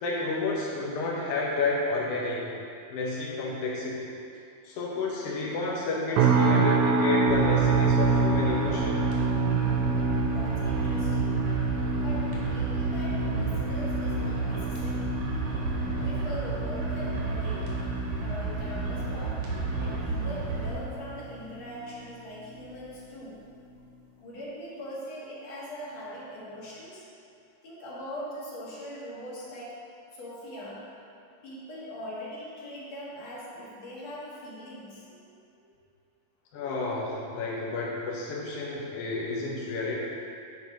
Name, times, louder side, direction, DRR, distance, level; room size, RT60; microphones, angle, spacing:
voice 1, 0.0-2.4 2.9-4.1 4.6-9.0 36.5-39.9, left 3 dB, 70° left, -4 dB, 1.4 m, -30 dB
sound 1, 6.2-21.4 21.7-22.1 22.6-22.8, right 4 dB, 85° right, 1.6 m, -28 dB
sound 2, 7.3-20.7, right 3 dB, 65° right, 2.6 m, -31 dB
voice 2, 10.3-11.5 12.0-15.2 16.0-17.8 18.2-23.4 24.2-27.1 27.6-30.9 31.4-35.6, equal, 55° left, -7 dB, 2.5 m, -41 dB
7.9 x 4.8 x 5.2 m, 2.6 s
omnidirectional pair, 4.0 m